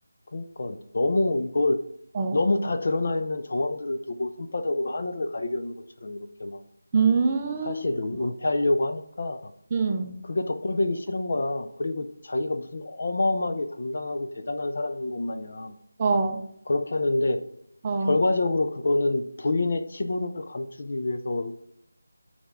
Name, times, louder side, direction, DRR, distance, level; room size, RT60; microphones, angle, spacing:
voice 1, 0.3-1.8 2.3-5.7 6.0-6.6 7.6-9.5 10.3-15.7 16.7-17.4 18.0-21.7, left 2 dB, 50° left, 8 dB, 0.6 m, -27 dB
voice 2, 6.9-7.8 9.7-10.2 16.0-16.4 17.8-18.2, right 4 dB, 20° right, 4 dB, 0.5 m, -24 dB
6.8 x 4.3 x 3.5 m, 0.70 s
figure-of-eight pair, 170°, 0 cm